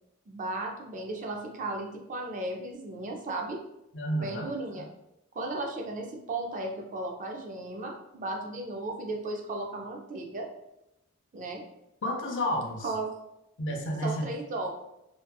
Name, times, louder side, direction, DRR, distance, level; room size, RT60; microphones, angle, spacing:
voice 1, 0.3-3.6 4.1-4.9 5.4-10.5 11.3-11.6 12.8-13.2 14.0-14.7, right 2 dB, 35° right, 1 dB, 0.4 m, -35 dB
voice 2, 3.9-4.5 12.0-12.9 13.6-14.2, equal, 55° left, 1 dB, 0.5 m, -30 dB
2.7 x 2.3 x 2.2 m, 0.86 s
head